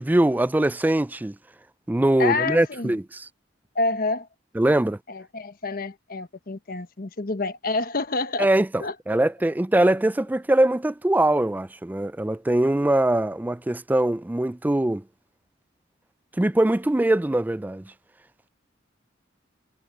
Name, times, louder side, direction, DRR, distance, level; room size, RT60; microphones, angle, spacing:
voice 1, 0.0-1.4 1.9-3.3 4.6-5.0 8.4-15.0 16.4-17.8, right 1 dB, 10° right, 0.3 m, -22 dB
voice 2, 2.2-2.9 3.7-4.3 5.1-8.5 8.8-8.9, left 3 dB, 50° left, 1.1 m, -28 dB
head